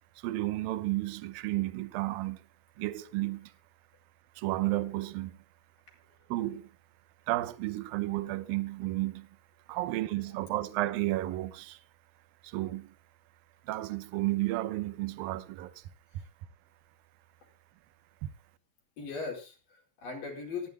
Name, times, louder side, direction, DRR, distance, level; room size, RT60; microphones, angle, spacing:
voice 1, 0.2-2.4 2.8-3.5 4.4-5.4 6.3-6.7 7.3-9.3 9.7-11.8 12.4-12.9 13.7-15.8 18.2-18.3, right 17 dB, 80° right, 2.1 m, -32 dB
voice 2, 9.7-10.4 19.0-20.7, left 4 dB, 45° left, 6.0 m, -40 dB
26.5 x 10.5 x 2.2 m
omnidirectional pair, 5.4 m